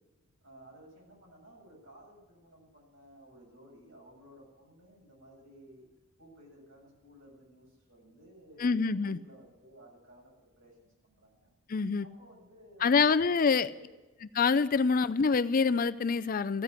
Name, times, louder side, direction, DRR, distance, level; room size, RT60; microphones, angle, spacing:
voice 1, 0.4-5.9 6.2-11.5 12.0-13.9, right 1 dB, 60° right, -2 dB, 7.7 m, -56 dB
voice 2, 8.6-9.2 11.7-12.1 12.8-13.7 14.3-16.6, left 5 dB, 40° left, 13 dB, 0.4 m, -26 dB
15.0 x 9.3 x 9.6 m, 1.2 s
head